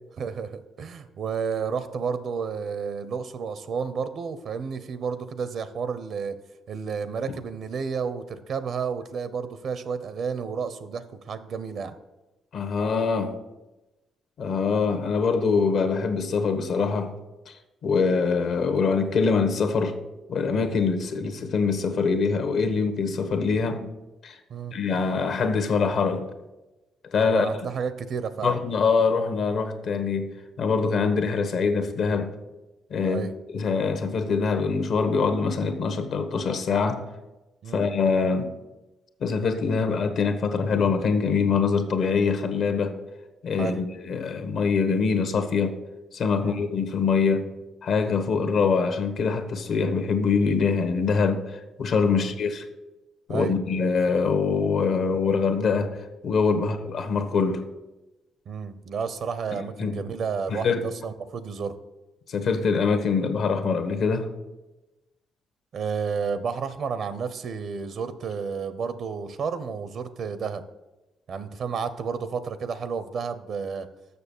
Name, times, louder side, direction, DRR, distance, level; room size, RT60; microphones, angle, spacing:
voice 1, 0.2-6.4 6.7-11.9 20.8-21.0 24.5-24.7 27.3-28.6 33.0-33.3 37.6-37.9 43.6-43.8 46.3-46.6 52.1-52.3 53.3-53.5 56.5-56.7 58.5-61.7 65.7-70.6 71.3-73.9, right 6 dB, 60° right, 0.7 m, -31 dB
voice 2, 12.5-13.4 14.4-17.1 17.5-17.6 17.8-20.0 20.3-23.9 24.2-24.4 24.7-26.3 27.1-27.5 28.4-32.3 32.9-33.2 33.5-37.0 37.7-38.5 39.2-43.0 43.4-45.8 46.1-47.5 47.8-52.6 53.3-57.6 59.5-60.0 60.5-60.9 62.3-64.3, left 5 dB, 65° left, 1.2 m, -24 dB
6.9 x 6.5 x 7.1 m
cardioid pair, 90°, 0 cm